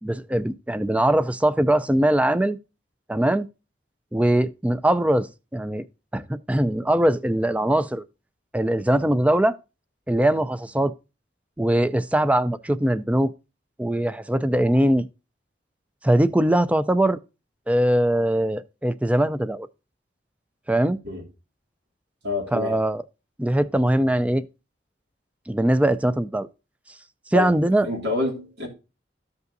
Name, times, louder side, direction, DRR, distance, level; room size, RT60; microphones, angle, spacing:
voice 1, 0.0-2.6 3.1-3.5 4.1-5.3 5.5-5.8 6.1-8.0 8.5-9.6 10.1-10.9 11.6-13.3 13.8-15.1 16.0-17.2 17.7-19.7 20.7-21.0 22.5-23.0 23.4-24.5 25.5-26.5 27.3-27.9, right 1 dB, 10° right, 0.4 m, -21 dB
voice 2, 22.2-22.8 27.3-27.5 27.8-28.7, left 2 dB, 90° right, 2.8 m, -27 dB
14.0 x 5.4 x 2.6 m
head